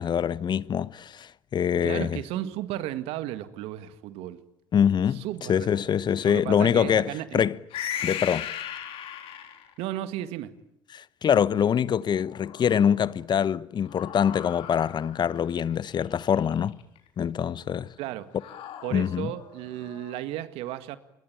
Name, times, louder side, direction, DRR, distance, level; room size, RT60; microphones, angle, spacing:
voice 1, 0.0-2.2 4.7-7.6 8.0-8.5 10.9-16.8 17.2-17.9 18.9-19.3, left 8 dB, 45° left, 1.0 m, -24 dB
voice 2, 1.8-4.4 5.1-5.9 6.2-7.4 9.8-10.6 18.0-18.3 18.8-21.0, right 13 dB, 70° right, 1.9 m, -34 dB
sound 1, 7.7-9.8 12.1-13.1 13.8-17.0 18.4-20.1, left 10 dB, 65° left, 3.8 m, -38 dB
28.0 x 22.5 x 8.9 m
hypercardioid pair, 55°, 10 cm